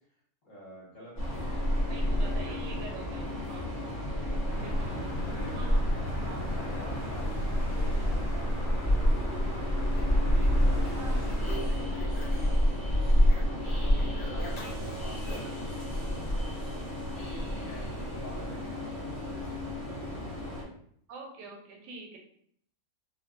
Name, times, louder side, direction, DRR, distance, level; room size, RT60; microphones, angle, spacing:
voice 1, 0.4-2.8 3.9-4.9 5.3-9.4 9.8-13.3 13.8-16.5 17.1-19.5 19.8-20.2, equal, 50° left, -7 dB, 1.3 m, -49 dB
Train, 1.2-20.6, equal, 20° left, 0.4 m, -29 dB
voice 2, 1.9-3.6 4.6-5.2 5.5-5.9 6.2-6.6 11.0-11.5 21.1-22.2, right 2 dB, 90° right, 1 dB, 1.3 m, -45 dB
sound 1, 4.5-11.6, left 1 dB, 50° right, 0.6 m, -37 dB
sound 2, 9.9-12.6 12.9-15.6, equal, 80° left, 1.4 m, -46 dB
3.3 x 2.2 x 2.4 m, 0.66 s
omnidirectional pair, 1.8 m